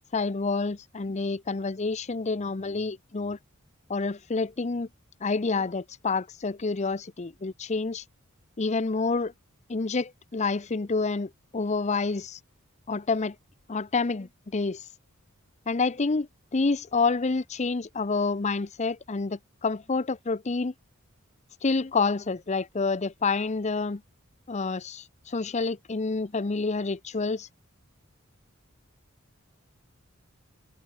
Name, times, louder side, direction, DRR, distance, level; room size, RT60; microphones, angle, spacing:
voice 1, 0.1-3.4 3.9-4.9 5.2-8.0 8.6-9.3 9.7-12.4 12.9-13.4 13.7-14.9 15.7-20.7 21.6-24.0 24.5-27.5, left 4 dB, 35° left, 0.6 m, -28 dB
head